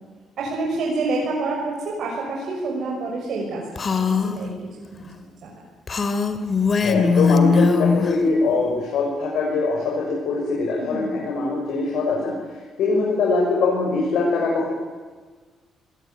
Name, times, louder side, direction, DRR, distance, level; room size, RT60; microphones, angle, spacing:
voice 1, 0.4-1.7 2.0-3.6 3.9-4.5 4.9-5.1 5.4-5.5 7.6-7.9 10.8-11.1, right 3 dB, 65° right, -2 dB, 6.4 m, -27 dB
Female speech woman speaking, 3.8-4.4 5.9-8.1, left 5 dB, 40° left, 2.6 m, -20 dB
voice 2, 6.8-12.3 12.8-14.7, left 3 dB, 75° left, -2 dB, 6.7 m, -22 dB
26.0 x 20.5 x 9.4 m, 1.4 s
cardioid pair, 90°, 0 cm